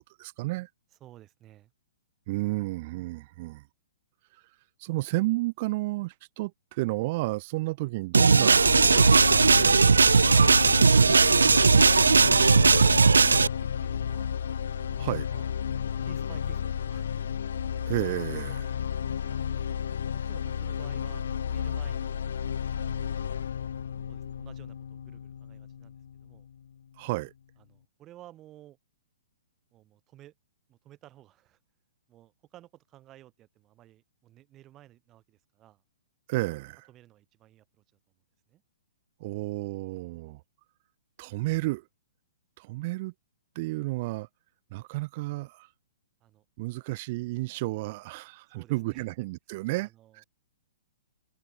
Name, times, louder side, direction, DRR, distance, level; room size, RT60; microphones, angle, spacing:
voice 1, 0.2-0.7 2.3-3.6 4.8-10.4 15.0-15.3 17.9-18.8 27.0-27.3 36.3-36.9 39.2-40.4 41.2-41.8 42.6-43.1 43.6-44.3 44.7-45.7 46.6-49.9, right 21 dB, 45° right, 2.2 m, -32 dB
voice 2, 1.0-1.7 11.5-11.8 12.3-14.3 14.8-15.5 16.0-17.2 19.2-19.7 20.0-21.2 21.5-22.2 22.7-23.3 24.1-26.5 27.7-28.8 29.7-30.3 30.7-31.6 32.1-35.8 36.9-37.8 38.5-38.6 46.2-46.4 48.5-49.1 49.7-50.2, right 14 dB, 25° right, 5.9 m, -53 dB
sound 1, 8.1-13.5, right 4 dB, 85° right, 0.5 m, -18 dB
sound 2, 8.5-26.6, left 8 dB, 65° left, 0.3 m, -32 dB
hypercardioid pair, 125°, 0 cm